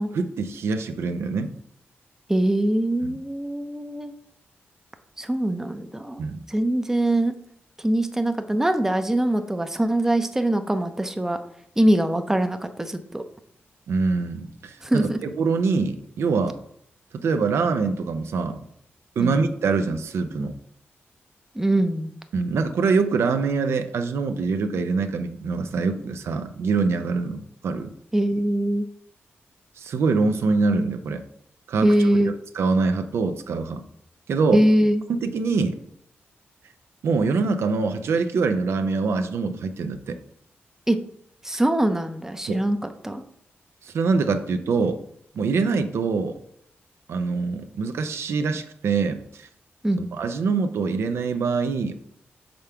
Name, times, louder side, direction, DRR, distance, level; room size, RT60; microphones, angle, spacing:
voice 1, 0.1-1.5 3.0-3.2 6.2-6.4 13.9-15.1 15.4-16.6 17.1-18.6 19.2-20.5 22.3-27.9 29.8-31.2 31.7-31.9 32.5-33.8 34.3-34.6 35.1-35.8 37.0-40.2 42.5-42.6 43.8-45.0 45.3-46.3 47.1-49.5 50.0-51.9, right 4 dB, 80° right, 8 dB, 0.5 m, -24 dB
voice 2, 2.3-4.1 5.2-6.2 6.5-7.3 7.8-11.4 11.8-13.2 14.8-15.2 19.2-19.4 21.5-22.1 28.1-28.9 31.8-32.3 34.5-35.0 40.9-41.0 41.4-43.2 49.8-50.0, right 1 dB, 10° right, 8 dB, 0.5 m, -22 dB
5.1 x 3.5 x 5.7 m, 0.69 s
cardioid pair, 90°, 4 cm